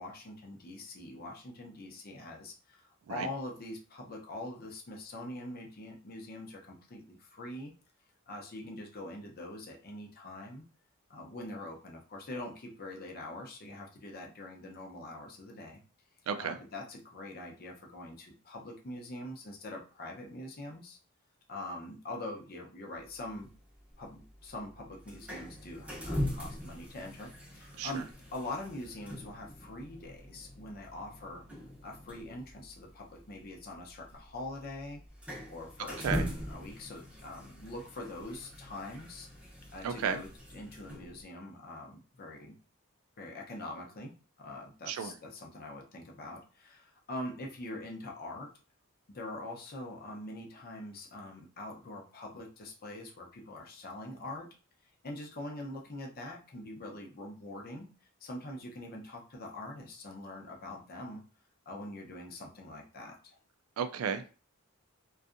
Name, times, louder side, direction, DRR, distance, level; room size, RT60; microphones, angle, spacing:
voice 1, 0.0-7.7 8.3-10.6 11.1-15.8 16.4-21.0 21.5-23.5 24.0-31.4 31.8-39.3 39.7-42.6 43.2-48.5 49.1-54.5 55.0-57.9 58.2-61.2 61.7-63.4, left 1 dB, 45° left, 1 dB, 0.6 m, -44 dB
voice 2, 16.3-16.6 27.8-28.0 36.0-36.3 39.8-40.2 44.9-45.2 63.8-64.3, right 7 dB, 75° right, 10 dB, 0.3 m, -33 dB
sound 1, 23.0-41.2, equal, 5° right, 0.6 m, -42 dB
2.6 x 2.3 x 2.5 m, 0.35 s
head